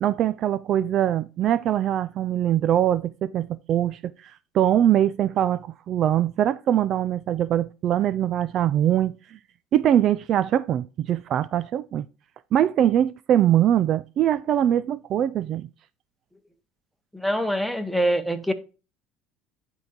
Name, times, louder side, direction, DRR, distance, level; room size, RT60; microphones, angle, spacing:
voice 1, 0.0-9.2 9.7-12.1 12.5-15.7, right 11 dB, 50° right, 0.4 m, -22 dB
voice 2, 17.1-18.5, right 1 dB, ahead, 1.1 m, -24 dB
10.5 x 3.9 x 4.3 m
supercardioid pair, 95°, 0 cm